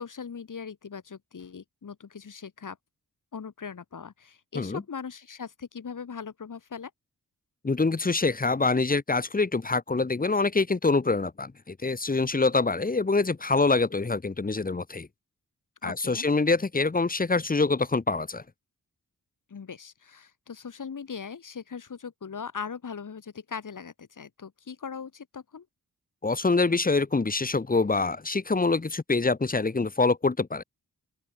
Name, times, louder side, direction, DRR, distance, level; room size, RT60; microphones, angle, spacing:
voice 1, 0.0-2.8 3.3-6.9 15.8-16.2 19.5-25.7, left 6 dB, 60° left, 7.7 m, -40 dB
voice 2, 7.6-15.1 15.8-18.4 26.2-30.6, left 3 dB, 25° left, 1.5 m, -25 dB
open air
wide cardioid pair, 150°, 35 cm